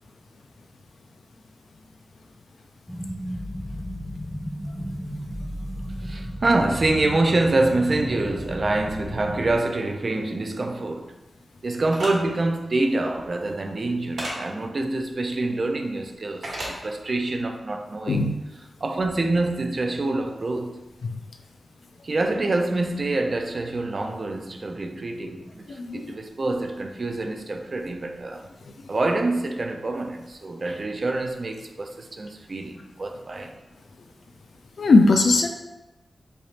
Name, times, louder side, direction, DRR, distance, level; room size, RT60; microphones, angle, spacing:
sound 1, 2.9-9.5, equal, 15° left, 0.6 m, -34 dB
voice 1, 6.0-11.1 11.6-18.3 18.8-20.8 22.0-28.5 28.9-33.5, right 2 dB, 40° right, 0.4 m, -26 dB
sound 2, 11.9-12.1 14.2-14.4 16.4-16.7, right 1 dB, 85° right, 1.2 m, -30 dB
voice 2, 25.7-26.1 34.8-35.5, left 3 dB, 65° left, 0.3 m, -19 dB
3.3 x 2.4 x 4.0 m
wide cardioid pair, 125°, 0 cm